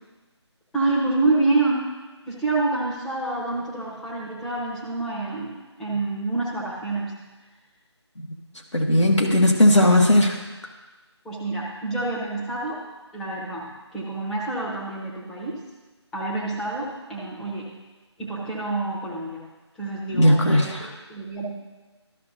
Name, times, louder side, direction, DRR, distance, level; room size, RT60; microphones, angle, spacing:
voice 1, 0.7-1.9 2.3-7.1 9.3-9.7 11.2-12.8 13.1-15.6 16.1-17.7 18.2-19.4 19.8-21.4, right 2 dB, 5° left, -6 dB, 0.7 m, -27 dB
voice 2, 8.7-10.4 20.1-20.9, left 1 dB, 85° left, 0 dB, 1.4 m, -17 dB
13.0 x 6.1 x 2.7 m, 1.2 s
figure-of-eight pair, 155°, 15 cm